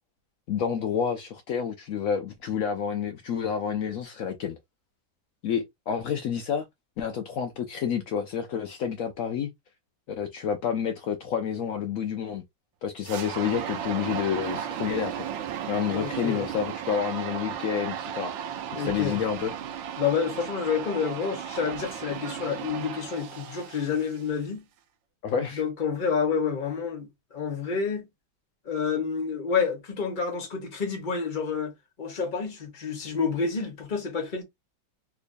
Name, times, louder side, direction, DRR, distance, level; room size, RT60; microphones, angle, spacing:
voice 1, 0.5-4.6 5.4-6.6 7.0-9.5 10.1-12.4 12.8-15.2 15.7-18.3 18.7-19.5 25.2-25.6, left 7 dB, 80° left, 0.7 m, -29 dB
sound 1, 13.1-24.4, right 9 dB, 85° right, 1.4 m, -35 dB
voice 2, 15.9-16.5 18.7-19.2 20.0-24.6 25.3-28.1 28.6-31.7 32.0-34.4, left 6 dB, 35° left, 0.9 m, -29 dB
3.3 x 3.0 x 2.5 m
omnidirectional pair, 2.0 m